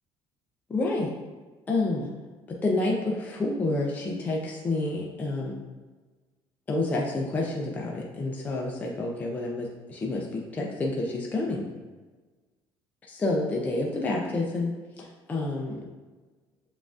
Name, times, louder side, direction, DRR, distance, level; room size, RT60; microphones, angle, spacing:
voice 1, 0.7-1.1 1.7-2.1 2.6-5.6 6.7-11.7 13.1-14.7 15.0-15.8, left 2 dB, 15° left, -2 dB, 0.4 m, -29 dB
7.2 x 2.5 x 2.4 m, 1.3 s
cardioid pair, 165°, 10 cm